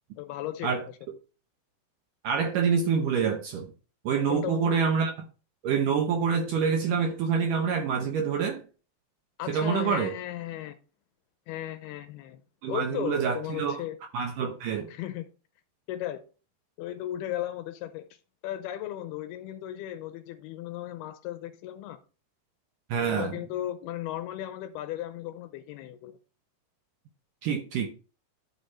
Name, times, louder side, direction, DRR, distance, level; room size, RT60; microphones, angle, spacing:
voice 1, 0.2-1.0 4.3-4.8 9.4-10.8 11.5-12.4 12.7-14.0 14.9-15.2 15.9-16.2 16.8-18.1 18.4-22.0 23.0-26.2, left 13 dB, 80° left, 2.4 m, -36 dB
voice 2, 2.2-3.7 4.1-5.1 5.6-8.6 9.5-10.1 12.6-13.8 14.1-14.9 22.9-23.3 27.4-27.9, right 6 dB, 70° right, 2.0 m, -26 dB
11.5 x 5.4 x 4.2 m
omnidirectional pair, 4.9 m